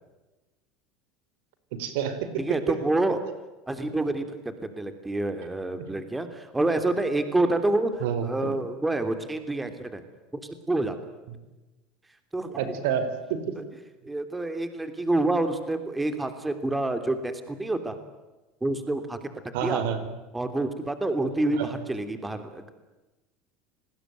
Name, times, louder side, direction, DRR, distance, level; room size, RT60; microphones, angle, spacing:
voice 1, 1.7-2.8 8.0-8.5 12.6-13.6 19.5-20.0 21.6-21.7, right 8 dB, 80° right, 11 dB, 4.8 m, -29 dB
voice 2, 2.4-3.2 3.7-4.4 4.8-10.0 10.3-11.0 12.3-12.8 14.0-18.0 18.6-19.3 19.6-19.8 20.3-22.7, right 2 dB, 10° right, 9 dB, 3.1 m, -28 dB
29.0 x 20.0 x 9.4 m, 1.1 s
supercardioid pair, 120°, 0 cm